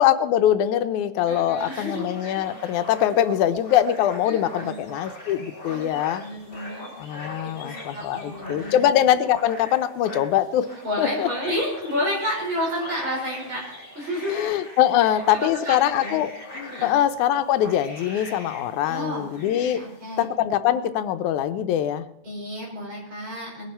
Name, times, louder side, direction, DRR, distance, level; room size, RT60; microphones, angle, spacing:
voice 1, 0.0-6.2 7.0-10.7 11.0-11.3 14.3-19.8 20.2-22.1, left 11 dB, 90° left, 11 dB, 2.2 m, -23 dB
voice 2, 1.2-2.0 4.3-4.7 5.7-5.9 6.2-7.0 7.4-8.8 10.8-13.7 14.0-14.4 15.1-16.2 16.7-16.9 18.9-19.3 19.7-20.2 22.2-23.7, equal, 40° right, -2 dB, 5.7 m, -30 dB
sound 1, 1.6-20.3, left 1 dB, 25° left, 6.4 m, -42 dB
20.5 x 11.5 x 4.4 m, 0.85 s
omnidirectional pair, 3.4 m